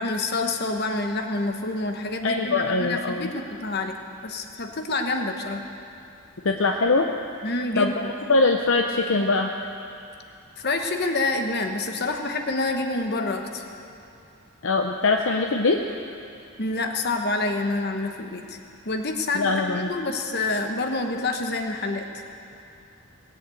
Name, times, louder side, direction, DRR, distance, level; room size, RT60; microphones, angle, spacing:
voice 1, 0.0-3.9 4.2-5.6 7.4-8.1 10.6-13.6 16.6-18.6 18.8-22.1, left 2 dB, 50° left, 4 dB, 1.1 m, -27 dB
voice 2, 2.2-3.3 6.4-7.1 7.8-9.5 14.6-15.8 19.3-19.9, left 3 dB, 65° left, 3 dB, 0.7 m, -22 dB
19.0 x 7.8 x 7.8 m, 2.7 s
head